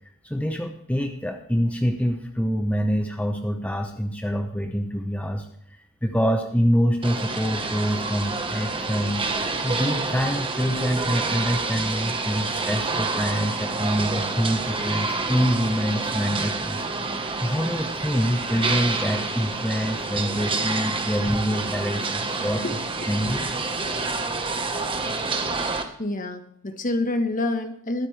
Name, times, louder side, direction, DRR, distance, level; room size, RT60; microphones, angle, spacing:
voice 1, 0.2-5.5 6.0-9.3 9.6-16.8 17.4-22.6 23.1-23.5, equal, 5° left, 4 dB, 0.8 m, -25 dB
sound 1, 7.0-25.8, right 3 dB, 25° right, 1.2 m, -28 dB
voice 2, 26.0-28.1, left 2 dB, 40° left, 7 dB, 1.4 m, -27 dB
21.5 x 8.5 x 3.3 m, 0.69 s
head